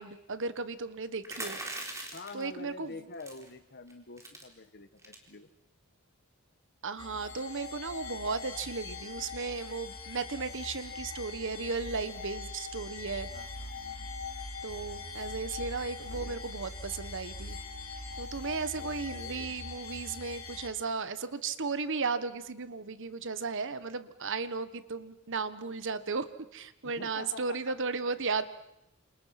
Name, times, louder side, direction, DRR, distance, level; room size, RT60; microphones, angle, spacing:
voice 1, 0.0-1.6 2.3-3.0 6.8-13.3 14.6-17.6 18.2-26.3 26.5-28.4, right 4 dB, 60° right, 13 dB, 1.3 m, -35 dB
sound 1, 1.2-2.4 3.2-3.5 3.9-4.0 4.2-4.4 5.0-5.3, right 2 dB, 15° right, 4.0 m, -40 dB
voice 2, 2.1-5.5 13.3-14.2 15.8-16.5 18.7-19.5 26.8-27.7, left 3 dB, 50° left, 11 dB, 1.6 m, -47 dB
sound 2, 7.0-20.7, left 3 dB, 65° left, 4.9 m, -42 dB
29.5 x 27.5 x 6.0 m, 0.85 s
head